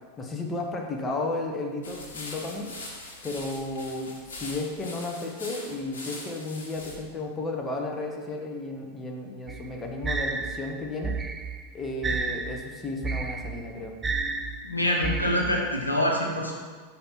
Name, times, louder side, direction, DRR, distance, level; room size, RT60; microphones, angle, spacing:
voice 1, 0.2-2.7 3.2-11.2 11.7-13.9, left 2 dB, 15° left, 1 dB, 0.9 m, -33 dB
sound 1, 1.8-7.0, left 2 dB, 60° left, 1.5 m, -41 dB
sound 2, 9.5-15.8, right 4 dB, 15° right, 0.4 m, -32 dB
voice 2, 14.6-16.5, left 1 dB, 85° left, -1 dB, 1.0 m, -25 dB
5.6 x 5.1 x 4.4 m, 1.5 s
figure-of-eight pair, 90°, 0 cm